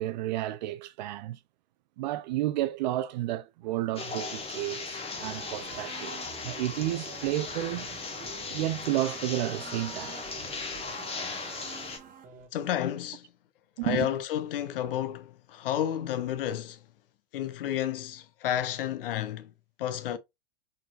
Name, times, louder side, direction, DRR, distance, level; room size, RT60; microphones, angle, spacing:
voice 1, 0.0-1.4 2.0-7.9 8.5-10.2 13.8-14.1, right 15 dB, 45° right, 0.4 m, -31 dB
sound 1, 4.0-12.0, left 4 dB, 20° left, 1.3 m, -38 dB
sound 2, 5.1-12.5, right 7 dB, 25° right, 1.2 m, -48 dB
voice 2, 12.5-13.3 13.8-16.9 17.3-19.5 19.8-20.2, left 11 dB, 60° left, 0.8 m, -31 dB
4.3 x 4.2 x 2.3 m
figure-of-eight pair, 100°, 32 cm